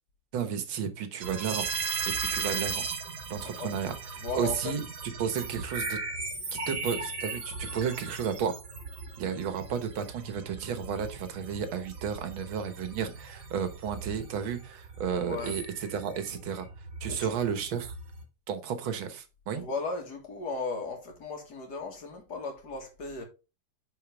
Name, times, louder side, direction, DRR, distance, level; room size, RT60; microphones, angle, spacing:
voice 1, 0.3-1.7 2.2-2.8 3.3-3.9 4.3-4.8 5.2-6.0 6.5-8.6 9.2-16.7 17.0-17.9 18.5-19.6, right 7 dB, 90° right, 1.9 m, -32 dB
sound 1, 1.2-18.2, right 4 dB, 70° right, 2.2 m, -37 dB
voice 2, 4.2-4.7 15.1-15.6 17.1-17.3 19.6-23.2, left 4 dB, 55° left, 2.2 m, -36 dB
9.2 x 4.5 x 3.4 m
omnidirectional pair, 2.1 m